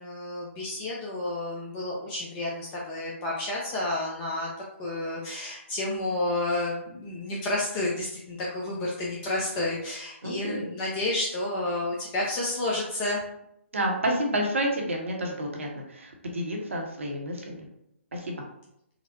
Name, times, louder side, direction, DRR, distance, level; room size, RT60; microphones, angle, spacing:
voice 1, 0.0-4.5 4.8-13.2, left 2 dB, 20° left, -4 dB, 0.6 m, -30 dB
voice 2, 10.2-10.7 13.7-17.7 18.1-18.4, right 1 dB, 70° right, 0 dB, 0.9 m, -30 dB
3.9 x 2.1 x 2.7 m, 0.77 s
figure-of-eight pair, 135°, 7 cm